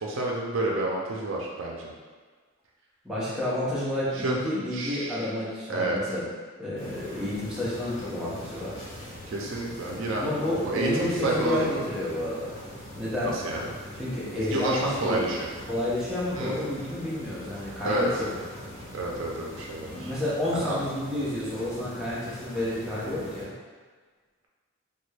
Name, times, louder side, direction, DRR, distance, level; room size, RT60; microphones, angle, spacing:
voice 1, 0.0-1.9 4.1-4.4 4.7-5.2 5.7-6.1 6.7-6.8 9.3-10.2 10.5-11.7 13.2-13.7 14.2-15.5 16.3-16.6 17.8-18.2 18.9-20.1 20.5-20.8, right 1 dB, 65° right, -2 dB, 0.5 m, -29 dB
voice 2, 3.0-6.2 6.6-8.8 10.2-12.6 13.0-13.3 14.0-15.3 15.7-18.3 20.0-23.5, left 1 dB, 5° right, -9 dB, 0.7 m, -30 dB
sound 1, 6.8-23.4, left 1 dB, 35° left, 1.4 m, -42 dB
3.2 x 2.2 x 3.2 m, 1.5 s
head